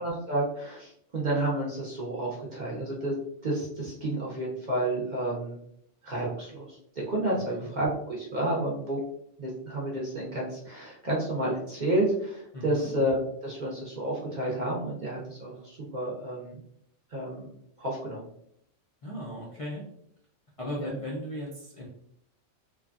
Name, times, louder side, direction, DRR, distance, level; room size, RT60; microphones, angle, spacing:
voice 1, 0.0-3.1 3.4-5.6 6.0-6.8 7.1-9.0 9.4-16.6 17.1-17.5 17.8-18.3 20.8-20.9, right 1 dB, 50° right, -4 dB, 0.6 m, -30 dB
voice 2, 7.4-7.7 12.5-12.9 19.0-19.8 20.6-21.9, equal, 55° left, -4 dB, 0.3 m, -37 dB
3.1 x 2.2 x 2.4 m, 0.71 s
omnidirectional pair, 1.3 m